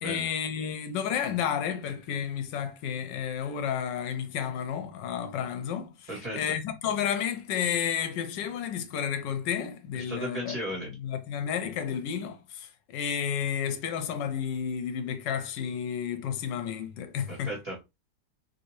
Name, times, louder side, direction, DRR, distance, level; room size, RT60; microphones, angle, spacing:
voice 1, 0.0-10.5 11.0-17.5, left 8 dB, 85° left, 1.2 m, -31 dB
voice 2, 6.1-6.5 9.9-10.9 17.3-17.8, right 1 dB, 20° right, 1.7 m, -36 dB
3.3 x 2.7 x 2.9 m
omnidirectional pair, 1.9 m